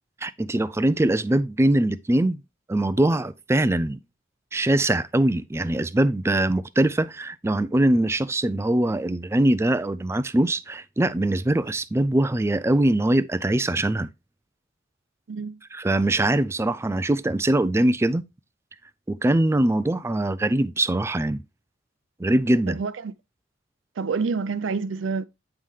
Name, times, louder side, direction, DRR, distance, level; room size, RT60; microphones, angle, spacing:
voice 1, 0.2-2.4 2.7-4.0 4.5-14.1 15.7-18.2 19.1-21.4 22.2-22.8, right 1 dB, 15° right, 0.3 m, -22 dB
voice 2, 15.3-15.6 22.7-23.1 24.0-25.2, right 4 dB, 70° right, 0.5 m, -28 dB
8.8 x 5.5 x 3.2 m
head